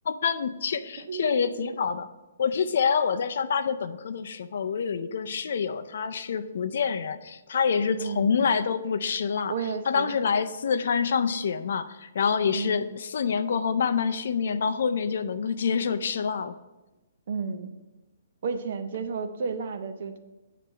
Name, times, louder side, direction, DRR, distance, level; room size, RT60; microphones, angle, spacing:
voice 1, 0.1-2.1 2.4-9.5 9.9-16.6, left 6 dB, 55° left, 10 dB, 0.4 m, -27 dB
voice 2, 1.0-1.5 7.9-8.4 9.5-10.2 12.5-12.8 17.3-17.7 18.4-20.2, right 5 dB, 45° right, 8 dB, 0.6 m, -32 dB
8.5 x 3.3 x 6.2 m, 1.1 s
hypercardioid pair, 175°, 0 cm